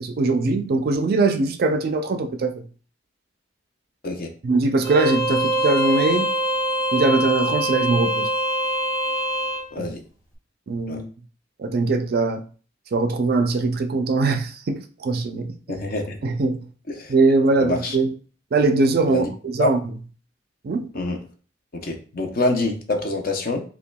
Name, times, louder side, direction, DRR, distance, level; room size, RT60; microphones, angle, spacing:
voice 1, 0.0-2.6 4.4-6.3 6.9-8.3 9.8-9.9 10.7-11.1 11.6-12.4 12.9-15.6 16.2-16.6 17.1-18.1 18.5-19.8 20.6-20.9, right 3 dB, 55° right, 0.4 m, -21 dB
Bowed string instrument, 4.8-9.7, right 1 dB, 20° left, 0.7 m, -24 dB
voice 2, 9.7-10.0 10.9-11.0 15.7-16.2 17.0-17.1 17.6-18.0 19.1-19.3 19.6-19.7 20.9-21.2 21.7-23.6, left 2 dB, 55° left, 0.7 m, -25 dB
5.5 x 2.2 x 2.2 m
head